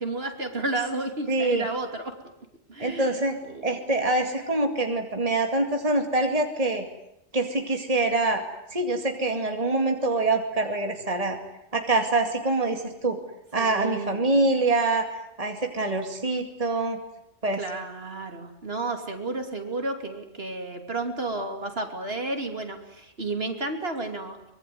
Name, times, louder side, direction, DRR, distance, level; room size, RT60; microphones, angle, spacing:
voice 1, 0.0-2.1 2.7-3.7 13.6-14.2 17.6-24.5, right 2 dB, 60° right, 5 dB, 3.3 m, -32 dB
voice 2, 1.3-1.7 2.8-3.4 3.6-6.9 7.3-8.4 8.7-11.4 11.7-13.2 13.5-15.1 15.4-17.0 17.4-17.6, right 2 dB, 30° right, 4 dB, 2.5 m, -25 dB
24.5 x 23.0 x 9.5 m, 0.82 s
omnidirectional pair, 1.2 m